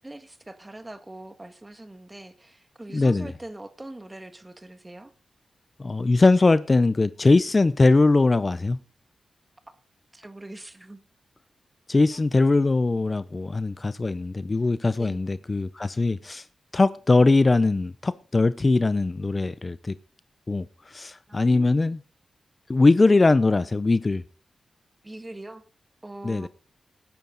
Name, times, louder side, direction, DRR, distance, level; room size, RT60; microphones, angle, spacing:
voice 1, 0.0-5.1 10.1-11.0 12.1-12.2 15.0-15.2 21.3-22.0 25.0-25.6 26.0-26.5, right 1 dB, 15° right, 1.7 m, -42 dB
voice 2, 2.9-3.3 5.8-8.8 11.9-16.4 16.7-20.0 20.5-22.0 22.7-24.2 26.2-26.5, left 3 dB, 30° left, 0.6 m, -21 dB
19.0 x 10.5 x 3.9 m
wide cardioid pair, 105°, 0 cm